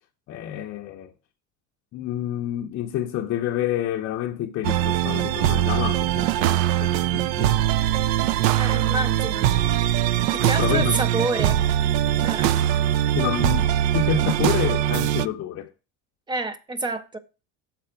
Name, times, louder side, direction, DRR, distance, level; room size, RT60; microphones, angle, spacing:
voice 1, 0.3-1.1 1.9-7.6 10.4-11.0 12.6-12.7 13.1-15.7, left 10 dB, 35° left, 0.6 m, -28 dB
sound 1, 4.6-15.3, right 12 dB, 75° right, 0.5 m, -22 dB
voice 2, 8.5-9.5 10.3-11.6 12.2-12.5 16.3-17.2, right 2 dB, 10° right, 0.3 m, -28 dB
6.8 x 4.2 x 5.5 m
cardioid pair, 140°, 41 cm